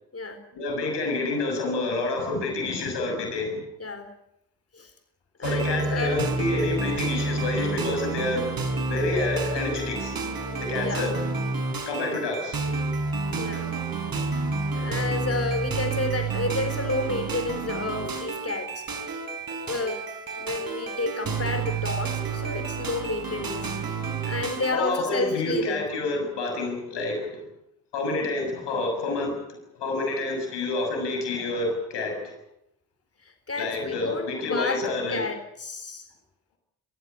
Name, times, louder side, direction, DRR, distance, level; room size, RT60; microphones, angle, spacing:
voice 1, 0.5-3.6 5.4-8.5 8.9-10.2 10.6-11.1 11.9-12.7 24.7-27.4 27.9-29.4 29.7-32.3 33.6-35.3, left 2 dB, 80° left, 3 dB, 6.8 m, -28 dB
voice 2, 5.4-6.3 10.8-11.0 13.4-13.8 14.8-18.8 19.5-20.0 20.4-23.7 24.2-25.8 33.5-34.8 35.1-36.0, left 3 dB, 35° left, 7 dB, 4.0 m, -31 dB
sound 1, 5.4-24.7, right 4 dB, 55° right, 4.7 m, -30 dB
25.0 x 15.0 x 9.8 m, 0.81 s
supercardioid pair, 40°, 41 cm